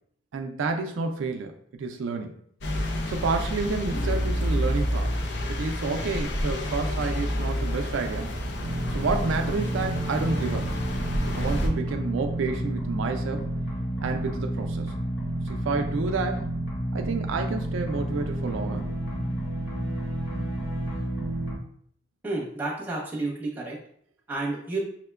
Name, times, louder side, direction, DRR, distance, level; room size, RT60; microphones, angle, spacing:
voice 1, 0.3-2.4 3.1-5.1 5.5-8.3 8.9-10.7 11.3-13.4 14.0-14.9 15.5-16.5 16.9-18.9, right 4 dB, 75° right, 4 dB, 0.3 m, -30 dB
sound 1, 2.6-11.7, equal, 60° left, 0.5 m, -29 dB
sound 2, 8.6-21.5, right 1 dB, 75° left, 1.4 m, -30 dB
voice 2, 22.2-23.8 24.3-24.8, right 2 dB, 10° right, -4 dB, 0.9 m, -30 dB
5.6 x 2.1 x 2.2 m, 0.65 s
head